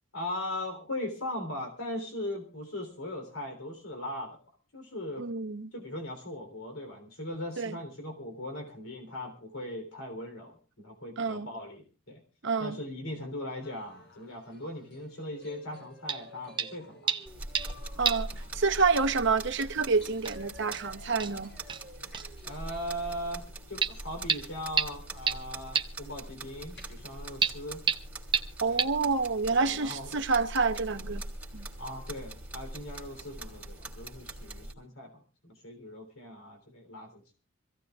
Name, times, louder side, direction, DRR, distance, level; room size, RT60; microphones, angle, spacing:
voice 1, 0.1-4.4 4.7-5.3 5.7-12.2 12.6-17.2 22.4-27.8 28.7-28.8 29.5-30.1 31.8-37.3, left 1 dB, 90° left, 3.4 m, -39 dB
voice 2, 5.2-5.7 7.6-7.7 11.2-11.5 12.4-12.8 18.0-18.3 18.5-21.5 28.6-31.2 31.5-31.7, right 4 dB, 60° right, 0.9 m, -28 dB
sound 1, 13.6-24.6 25.0-25.2 26.5-27.0 28.5-28.6 30.4-30.5 31.6-31.7 32.5-32.6, left 1 dB, 55° left, 4.2 m, -54 dB
sound 2, 16.1-16.3 16.6-16.8 17.1-17.8 18.1-18.3 18.6-18.7 19.8-19.9 20.3-20.4 20.7-20.8 21.2-21.3 21.7-21.8 22.1-22.3 23.8-23.9 24.3-24.4 24.8-24.9 25.3-25.4 25.8-25.9 27.4-27.5 27.9-28.0 28.3-28.4 28.8-28.9, right 6 dB, 20° right, 0.6 m, -28 dB
sound 3, 17.3-34.7, right 2 dB, 5° right, 2.7 m, -43 dB
25.5 x 16.0 x 2.4 m
head